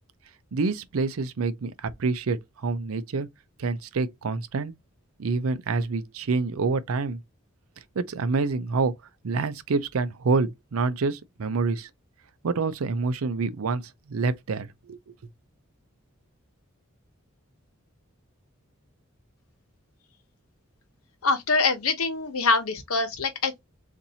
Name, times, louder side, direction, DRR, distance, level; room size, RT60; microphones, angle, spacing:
voice 1, 0.5-3.3 3.6-4.7 5.2-7.2 8.0-9.0 9.2-11.9 12.4-15.1, right 4 dB, 75° right, 0.5 m, -27 dB
voice 2, 21.2-23.6, left 4 dB, 85° left, 1.0 m, -24 dB
4.1 x 2.6 x 2.7 m
head